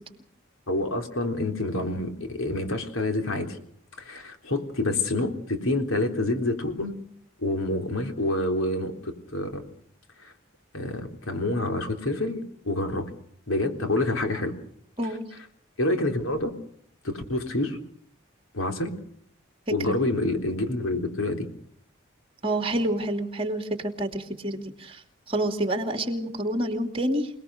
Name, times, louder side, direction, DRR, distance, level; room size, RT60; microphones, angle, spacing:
voice 1, 0.7-3.6 4.0-6.9 7.4-9.6 10.2-10.3 10.7-13.1 13.5-14.5 15.8-16.5 17.0-17.8 18.5-18.9 19.7-21.5, left 2 dB, 80° left, 5 dB, 3.8 m, -27 dB
voice 2, 22.4-25.0 25.3-27.3, right 1 dB, 25° right, 5 dB, 2.7 m, -28 dB
27.0 x 20.0 x 6.6 m, 0.66 s
head